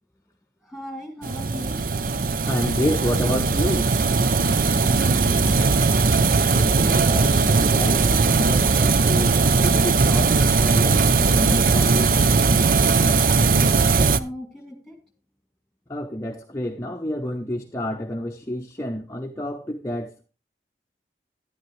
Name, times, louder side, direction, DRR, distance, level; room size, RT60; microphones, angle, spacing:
voice 1, 0.6-1.8 4.8-5.6 13.3-15.0, left 1 dB, ahead, 3 dB, 2.4 m, -36 dB
sound 1, 1.2-14.2, right 4 dB, 50° right, 0.6 m, -19 dB
voice 2, 2.5-3.9 6.5-12.1 15.9-20.2, left 1 dB, 15° left, 2 dB, 0.8 m, -29 dB
12.0 x 10.5 x 3.2 m, 0.32 s
head